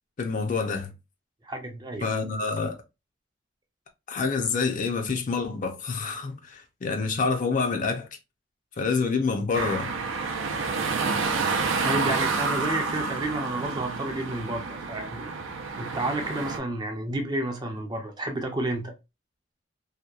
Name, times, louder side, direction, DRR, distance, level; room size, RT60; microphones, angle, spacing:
voice 1, 0.2-0.9 2.0-2.8 4.1-8.1 8.8-9.9, left 4 dB, 40° left, 0.4 m, -27 dB
voice 2, 1.4-2.0 11.8-15.3 15.8-18.9, right 1 dB, 20° right, 0.4 m, -31 dB
sound 1, 9.5-16.6, right 4 dB, 75° right, 0.4 m, -29 dB
2.8 x 2.2 x 2.3 m
head